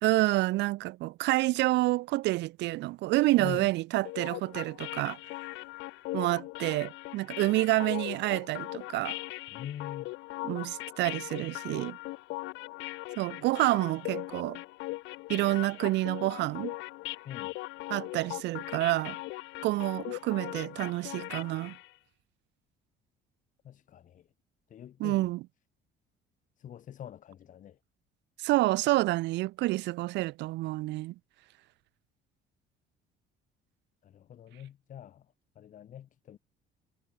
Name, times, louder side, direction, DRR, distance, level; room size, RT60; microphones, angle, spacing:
voice 1, 0.0-5.2 6.1-9.2 10.4-12.0 13.2-14.6 15.3-16.7 17.9-19.2 19.6-21.8 25.0-25.4 28.4-31.1, right 18 dB, 65° right, 0.6 m, -28 dB
voice 2, 3.4-3.7 9.5-10.1 17.2-17.6 23.6-24.3 24.7-25.3 26.6-27.8 34.0-36.4, left 10 dB, 40° left, 3.5 m, -44 dB
sound 1, 4.0-21.9, left 21 dB, 90° left, 1.0 m, -40 dB
cardioid pair, 160°, 19 cm